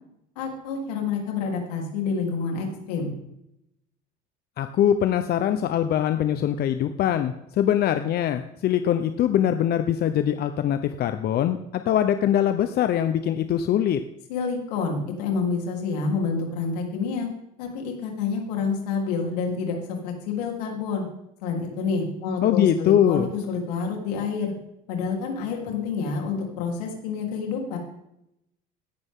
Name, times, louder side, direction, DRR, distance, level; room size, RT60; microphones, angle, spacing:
voice 1, 0.4-3.1 14.3-17.3 17.6-21.0 21.4-24.5 24.9-27.8, left 5 dB, 85° left, 1 dB, 3.7 m, -28 dB
voice 2, 4.6-14.0 22.4-23.3, left 10 dB, 55° left, 9 dB, 0.9 m, -22 dB
16.5 x 11.5 x 3.8 m, 0.83 s
supercardioid pair, 85°, 20 cm